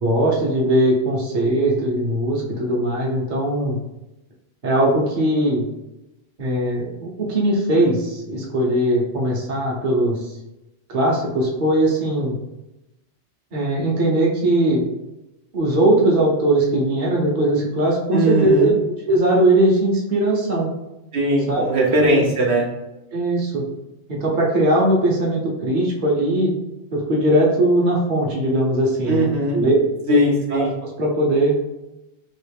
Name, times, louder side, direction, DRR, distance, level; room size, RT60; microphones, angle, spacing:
voice 1, 0.0-3.8 4.6-5.7 6.4-10.3 10.9-12.4 13.5-14.8 15.5-18.7 19.1-20.7 21.5-21.7 21.9-22.3 23.1-23.7 24.1-26.5 26.9-29.8 30.1-30.2 30.5-31.5, right 1 dB, 50° right, -3 dB, 1.0 m, -20 dB
voice 2, 18.1-18.7 21.1-22.6 29.1-29.6 30.1-30.7, right 1 dB, 75° right, -2 dB, 1.0 m, -19 dB
3.1 x 2.9 x 3.4 m, 0.94 s
omnidirectional pair, 1.1 m